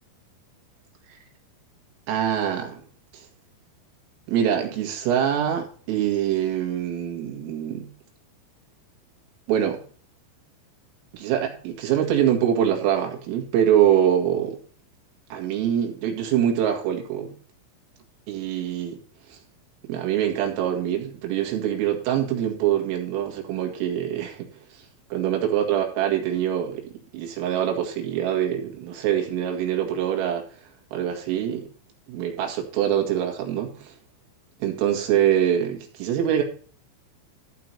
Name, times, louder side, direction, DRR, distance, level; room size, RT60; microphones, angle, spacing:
voice 1, 2.1-2.8 3.1-3.3 4.3-7.9 9.5-9.8 11.1-14.6 15.3-17.3 18.3-19.0 19.3-19.4 19.8-24.5 25.1-30.4 30.9-31.7 32.1-33.9 34.6-36.4, right 10 dB, 85° right, 4.6 m, -24 dB
14.0 x 4.7 x 5.7 m
omnidirectional pair, 5.8 m